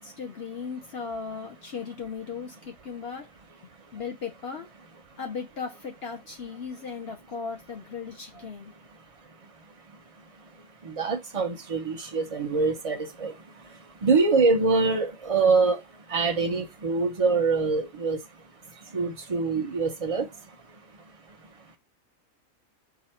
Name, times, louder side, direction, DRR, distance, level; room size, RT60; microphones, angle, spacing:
voice 1, 0.0-3.3 3.9-4.7 5.2-8.7, left 5 dB, 50° left, 0.8 m, -37 dB
voice 2, 10.8-13.3 14.0-15.8 16.1-18.2 18.9-20.3, right 4 dB, 35° right, 0.6 m, -24 dB
4.9 x 2.3 x 4.3 m
omnidirectional pair, 1.5 m